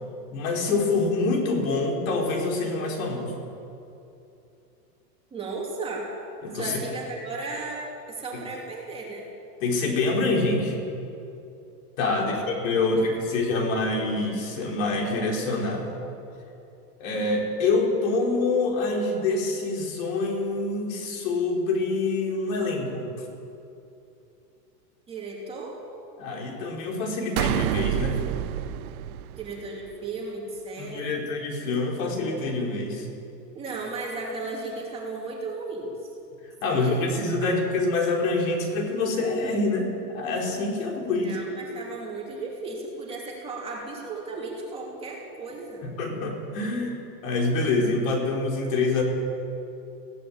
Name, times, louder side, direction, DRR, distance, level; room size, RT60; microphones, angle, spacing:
voice 1, 0.3-3.4 6.4-6.8 9.6-10.8 12.0-16.0 17.0-23.1 26.2-28.2 30.8-33.1 36.6-41.4 45.8-49.0, left 3 dB, 55° left, 0 dB, 4.4 m, -26 dB
voice 2, 5.3-6.0 6.5-7.8 8.1-9.3 12.1-12.4 12.8-13.0 13.3-13.9 25.1-25.8 29.4-31.2 33.5-36.1 36.6-37.1 37.4-37.6 41.2-45.9, right 3 dB, 10° right, -3 dB, 2.6 m, -35 dB
sound 1, 27.4-29.9, right 13 dB, 60° right, 0.7 m, -28 dB
20.5 x 16.5 x 8.6 m, 2.8 s
supercardioid pair, 180°, 48 cm